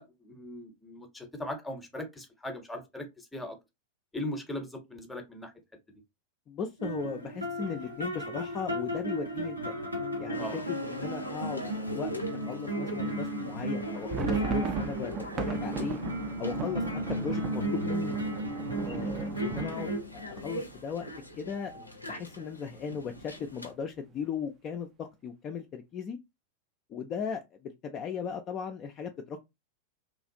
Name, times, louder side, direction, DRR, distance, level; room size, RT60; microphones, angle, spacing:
voice 1, 0.0-3.1 3.3-3.6 4.1-5.5 10.4-10.7, left 1 dB, 5° left, 0.8 m, -39 dB
voice 2, 6.5-9.7 10.2-12.1 12.4-16.0 16.4-18.2 18.8-21.1 21.4-26.2 26.9-29.4, left 6 dB, 30° left, 0.4 m, -37 dB
sound 1, 6.8-20.0, right 1 dB, 90° right, 0.8 m, -34 dB
sound 2, 10.3-23.7, equal, 85° left, 0.5 m, -42 dB
sound 3, 13.8-21.5 21.8-21.9 22.2-22.4 22.9-23.4, right 6 dB, 30° right, 0.4 m, -38 dB
3.0 x 2.4 x 2.6 m
figure-of-eight pair, 90°, 0 cm